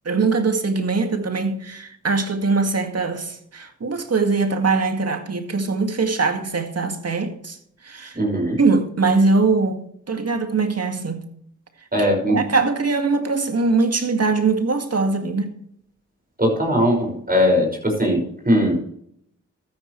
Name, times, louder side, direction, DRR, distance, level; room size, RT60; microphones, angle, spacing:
voice 1, 0.1-7.6 7.8-8.2 8.6-11.2 12.0-15.5, right 4 dB, 50° right, 2.0 m, -22 dB
voice 2, 8.2-8.6 11.9-12.4 16.4-18.8, equal, 30° right, 5.5 m, -20 dB
13.0 x 9.9 x 3.2 m
supercardioid pair, 45°, 31 cm